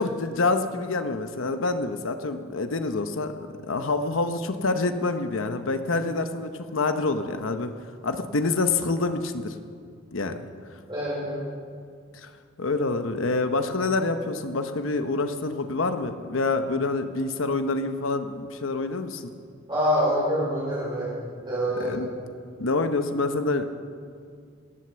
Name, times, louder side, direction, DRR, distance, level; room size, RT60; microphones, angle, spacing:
voice 1, 0.0-3.3 3.7-7.7 8.0-9.5 10.1-10.4 12.2-12.3 12.6-19.3 21.8-22.1 22.6-23.7, left 3 dB, 85° left, 8 dB, 0.9 m, -26 dB
voice 2, 10.9-11.4 19.7-21.9, equal, 25° right, -9 dB, 4.7 m, -26 dB
17.5 x 9.5 x 6.9 m, 2.1 s
head